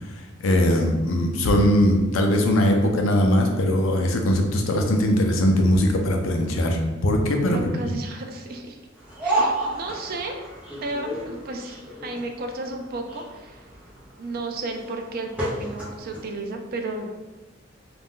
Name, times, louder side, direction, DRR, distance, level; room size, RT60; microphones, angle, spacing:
voice 1, 0.0-7.6, left 1 dB, 80° left, 3 dB, 0.5 m, -20 dB
voice 2, 7.5-8.8 9.2-13.7 14.2-17.1, right 2 dB, 50° right, 4 dB, 0.4 m, -33 dB
sound 1, 9.0-16.2, right 1 dB, 5° right, 0.6 m, -31 dB
2.4 x 2.2 x 3.5 m, 1.2 s
head